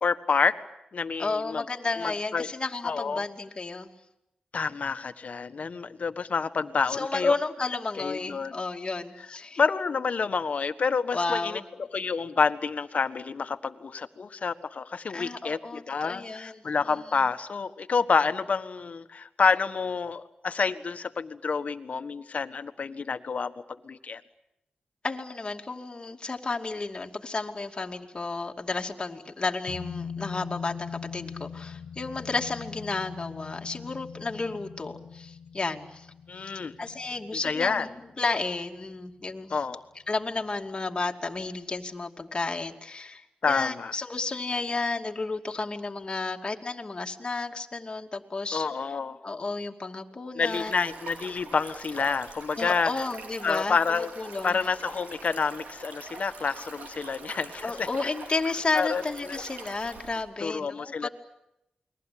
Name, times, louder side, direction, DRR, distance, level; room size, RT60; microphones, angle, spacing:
voice 1, 0.0-0.6 0.9-1.6 2.0-2.5 2.8-3.2 4.5-7.3 8.0-8.5 9.6-24.2 36.3-36.7 37.4-37.9 39.5-39.8 43.4-43.9 48.5-49.2 50.3-53.1 53.4-54.1 54.4-58.1 58.7-59.4 60.4-61.1, left 5 dB, 60° left, 10 dB, 1.5 m, -28 dB
voice 2, 1.2-3.9 6.9-9.6 11.1-11.7 15.1-16.6 25.0-36.1 36.4-36.5 36.8-37.9 38.2-39.6 40.1-48.7 49.2-50.7 52.6-54.6 57.6-61.1, left 3 dB, 35° left, 3 dB, 2.6 m, -32 dB
sound 1, 29.7-38.8 39.1-39.2, left 6 dB, 75° left, 1.0 m, -41 dB
Stream, 50.4-60.2, right 3 dB, 85° right, 4.8 m, -44 dB
29.0 x 21.5 x 8.7 m, 0.84 s
cardioid pair, 80°, 3 cm